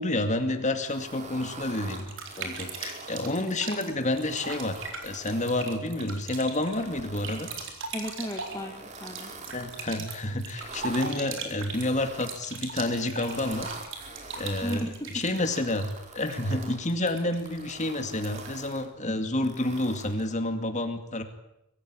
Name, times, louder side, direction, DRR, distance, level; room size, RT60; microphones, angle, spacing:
voice 1, 0.0-7.5 9.5-13.7 14.4-21.2, left 1 dB, 35° left, 7 dB, 2.4 m, -29 dB
sound 1, 0.8-3.4 3.9-6.2 6.6-7.7 8.3-9.9 10.4-11.1 11.7-12.6 13.1-14.8 15.3-16.8 17.3-18.9 19.4-20.3, right 3 dB, 35° right, 3.1 m, -44 dB
sound 2, 1.8-18.7, right 4 dB, 60° right, 4.2 m, -41 dB
voice 2, 7.9-9.3 14.6-15.2, equal, 15° left, 2 dB, 2.0 m, -35 dB
24.0 x 15.0 x 9.9 m, 0.86 s
head